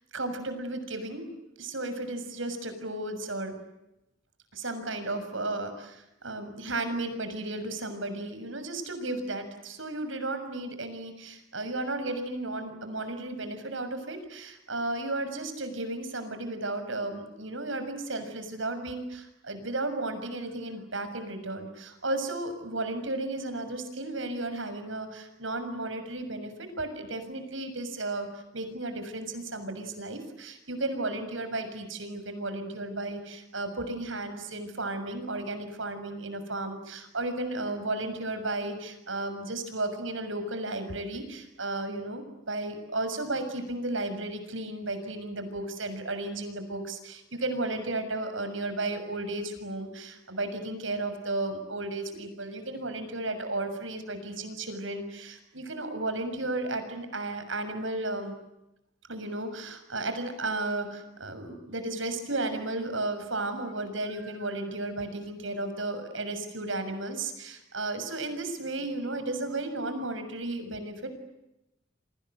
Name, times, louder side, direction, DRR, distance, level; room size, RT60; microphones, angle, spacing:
voice 1, 0.1-1.2 1.6-3.6 4.5-58.4 59.1-71.1, right 2 dB, 75° right, 9 dB, 6.7 m, -34 dB
29.5 x 25.5 x 8.0 m, 0.91 s
head